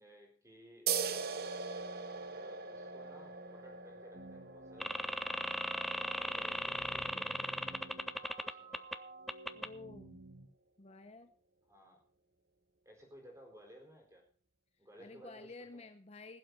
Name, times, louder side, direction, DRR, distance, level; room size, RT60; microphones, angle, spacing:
voice 1, 0.0-1.3 2.2-5.2 5.9-7.8 8.4-9.0 11.7-12.0 12.8-14.2 14.8-15.9, equal, 15° right, 1 dB, 4.5 m, -58 dB
sound 1, 0.9-8.0, right 6 dB, 55° right, 1.0 m, -41 dB
sound 2, 4.1-10.5, right 3 dB, 70° right, 3.1 m, -53 dB
sound 3, 4.8-8.9 9.3-9.7, equal, ahead, 0.5 m, -37 dB
voice 2, 9.5-10.2 10.8-11.3 15.0-16.4, left 3 dB, 35° left, 8 dB, 0.7 m, -51 dB
20.5 x 7.8 x 4.1 m, 0.41 s
head